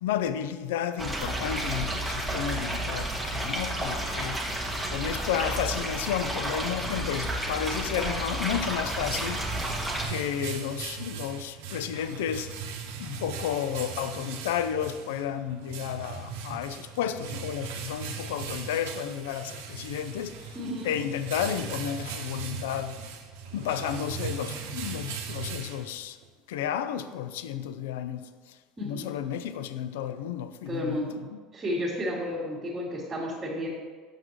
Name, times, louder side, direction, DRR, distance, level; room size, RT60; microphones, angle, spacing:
voice 1, 0.0-4.4 4.9-9.4 10.1-12.5 13.0-20.6 20.8-23.0 23.5-26.2 26.5-31.4, left 9 dB, 85° left, 0.3 m, -32 dB
sound 1, 1.0-10.1, right 1 dB, 5° right, 1.2 m, -31 dB
sound 2, 8.7-26.3, right 5 dB, 80° right, 0.7 m, -39 dB
voice 2, 20.5-20.9 28.8-29.1 30.6-31.2 31.5-33.7, equal, 25° right, 1.6 m, -32 dB
6.5 x 5.9 x 3.1 m
supercardioid pair, 100°, 0 cm